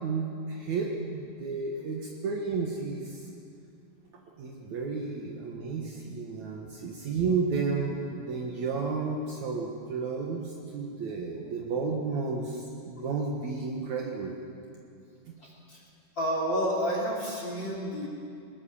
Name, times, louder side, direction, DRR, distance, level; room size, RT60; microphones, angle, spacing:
voice 1, 0.0-3.2 4.4-14.3 15.3-15.4, right 4 dB, 65° right, -1 dB, 2.8 m, -32 dB
voice 2, 15.4-15.8 16.2-18.1, equal, 35° left, -2 dB, 3.3 m, -30 dB
21.0 x 19.5 x 7.1 m, 2.5 s
omnidirectional pair, 3.7 m